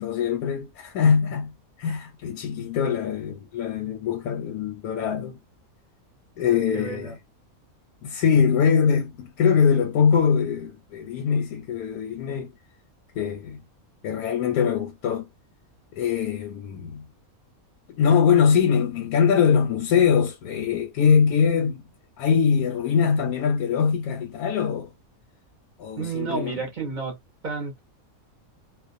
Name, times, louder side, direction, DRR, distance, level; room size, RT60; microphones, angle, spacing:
voice 1, 0.0-1.5 1.8-5.4 6.4-7.2 8.0-12.5 13.1-13.6 14.0-15.3 15.9-17.0 17.9-21.9 22.2-24.9 25.8-26.6, left 7 dB, 90° left, 1.1 m, -22 dB
voice 2, 6.5-7.1 26.0-27.2 27.4-27.8, right 5 dB, 45° right, 0.6 m, -31 dB
2.4 x 2.1 x 2.5 m
omnidirectional pair, 1.5 m